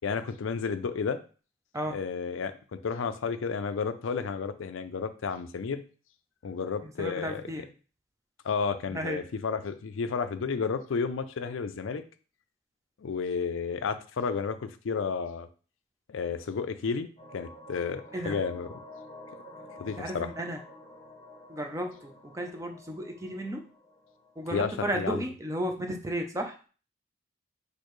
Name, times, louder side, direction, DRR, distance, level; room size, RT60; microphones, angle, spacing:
voice 1, 0.0-1.2 1.9-2.5 2.8-5.8 6.4-7.4 8.4-12.0 13.0-15.5 16.1-18.7 19.8-20.3 24.5-25.2, left 5 dB, 70° left, 10 dB, 0.4 m, -32 dB
voice 2, 6.8-7.7 8.9-9.3 18.1-18.4 20.0-20.6 21.5-23.7 24.4-26.6, right 1 dB, 15° right, 4 dB, 0.5 m, -34 dB
sound 1, 17.2-24.7, left 1 dB, 30° left, 0.9 m, -49 dB
6.5 x 2.7 x 3.1 m, 0.38 s
head